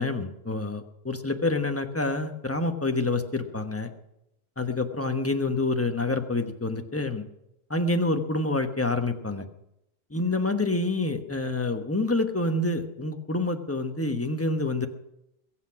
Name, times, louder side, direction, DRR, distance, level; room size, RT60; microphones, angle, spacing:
voice 1, 0.0-3.9 4.6-7.2 7.7-9.4 10.1-14.9, left 2 dB, 10° left, 6 dB, 1.0 m, -27 dB
22.0 x 8.2 x 6.0 m, 0.83 s
omnidirectional pair, 1.4 m